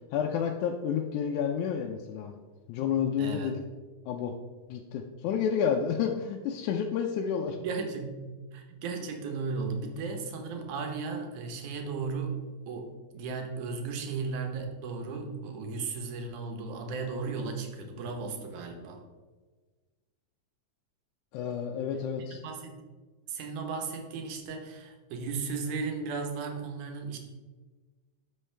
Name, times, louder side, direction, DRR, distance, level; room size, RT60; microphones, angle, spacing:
voice 1, 0.1-2.4 2.7-3.6 4.1-4.3 4.7-7.6 21.3-22.4, left 7 dB, 90° left, 2 dB, 2.1 m, -30 dB
voice 2, 3.2-3.5 7.6-8.3 8.5-12.3 12.7-19.0 22.3-22.8 23.3-27.2, right 4 dB, 85° right, 4 dB, 2.5 m, -35 dB
12.0 x 5.5 x 3.3 m, 1.3 s
omnidirectional pair, 3.4 m